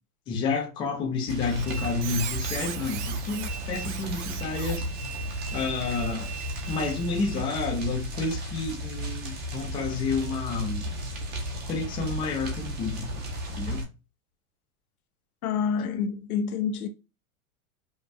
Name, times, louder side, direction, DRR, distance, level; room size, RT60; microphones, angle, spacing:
voice 1, 0.3-4.9 5.5-6.3 6.7-10.9 11.7-13.1 13.6-13.8, left 4 dB, 10° left, 0.5 m, -30 dB
sound 1, 1.3-13.8, equal, 20° right, 0.9 m, -34 dB
Squeak, 1.5-7.4, right 10 dB, 55° right, 0.6 m, -39 dB
voice 2, 15.4-16.9, left 6 dB, 75° left, 0.9 m, -28 dB
5.3 x 2.4 x 2.6 m
supercardioid pair, 160°, 44 cm